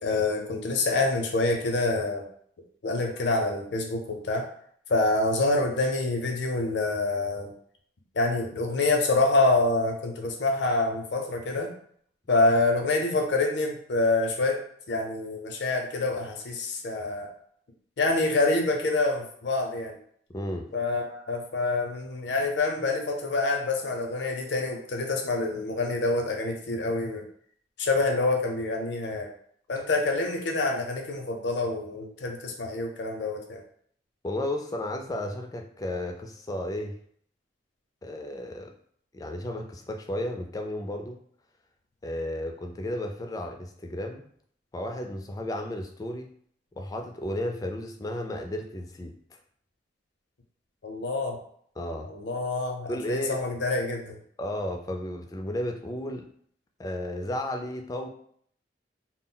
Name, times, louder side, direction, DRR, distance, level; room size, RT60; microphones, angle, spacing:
voice 1, 0.0-2.3 2.8-4.5 4.9-7.5 8.1-11.7 12.3-14.6 14.9-17.3 18.0-20.0 20.7-27.2 27.8-29.3 29.7-33.6 50.8-51.4 52.1-54.2, left 2 dB, 70° left, 2 dB, 0.5 m, -26 dB
voice 2, 20.3-20.7 34.2-37.0 38.0-38.7 39.1-41.2 42.0-44.3 44.7-46.3 46.8-49.4 51.8-52.1 52.9-53.4 54.4-56.3 56.8-58.1, left 1 dB, 20° left, 3 dB, 0.3 m, -33 dB
2.3 x 2.0 x 3.7 m, 0.62 s
head